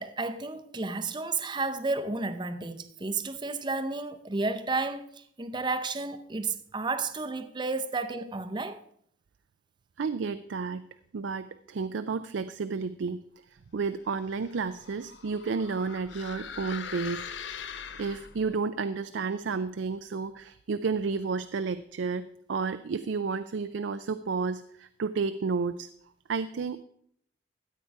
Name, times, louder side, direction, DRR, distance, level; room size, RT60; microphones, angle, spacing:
voice 1, 0.0-8.8, right 3 dB, 25° right, 0.6 m, -32 dB
voice 2, 10.0-10.9 11.1-13.2 13.7-17.3 17.7-25.9 26.3-26.8, right 4 dB, 85° right, 0.4 m, -31 dB
sound 1, 14.1-18.6, left 7 dB, 80° left, 0.7 m, -42 dB
14.0 x 8.3 x 4.7 m
head